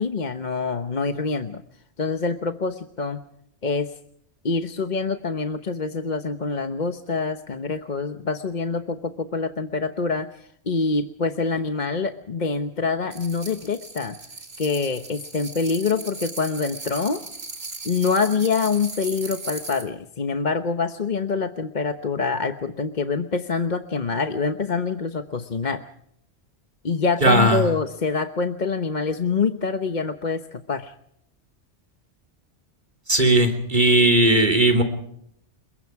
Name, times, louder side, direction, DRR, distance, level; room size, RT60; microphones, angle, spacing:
voice 1, 0.0-1.6 2.0-3.2 3.6-4.0 4.4-14.2 14.6-17.2 17.8-25.8 26.8-30.9, left 4 dB, 40° left, 7 dB, 1.1 m, -25 dB
sound 1, 13.1-19.9, right 3 dB, 75° right, 3.0 m, -37 dB
voice 2, 27.2-27.6 33.1-34.8, right 1 dB, 40° right, 7 dB, 3.4 m, -17 dB
29.5 x 22.0 x 4.7 m, 0.71 s
omnidirectional pair, 1.2 m